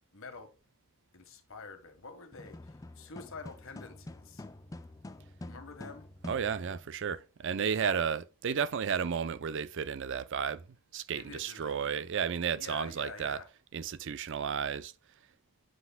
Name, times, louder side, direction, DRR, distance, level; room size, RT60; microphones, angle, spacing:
voice 1, 0.1-0.5 1.1-4.4 5.4-6.1 7.8-8.0 11.1-11.8 12.5-13.5, left 4 dB, 65° left, 1.4 m, -47 dB
sound 1, 2.3-7.0, left 2 dB, 15° left, 0.4 m, -47 dB
voice 2, 6.3-10.6 10.9-13.4 13.7-14.9, right 7 dB, 55° right, 0.5 m, -33 dB
7.6 x 5.8 x 2.2 m
head